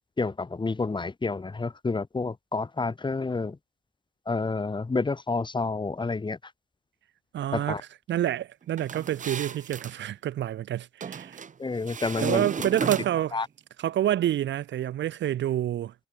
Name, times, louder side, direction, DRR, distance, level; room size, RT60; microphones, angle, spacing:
voice 1, 0.2-3.6 4.3-6.4 7.5-7.8 11.6-12.5 13.3-13.5, left 3 dB, 25° left, 3.0 m, -29 dB
voice 2, 7.3-11.4 12.2-13.4 13.8-15.9, right 12 dB, 65° right, 1.1 m, -28 dB
sound 1, 8.8-10.0 11.0-11.5 11.9-13.4, right 6 dB, 40° right, 1.3 m, -34 dB
cardioid pair, 90°, 20 cm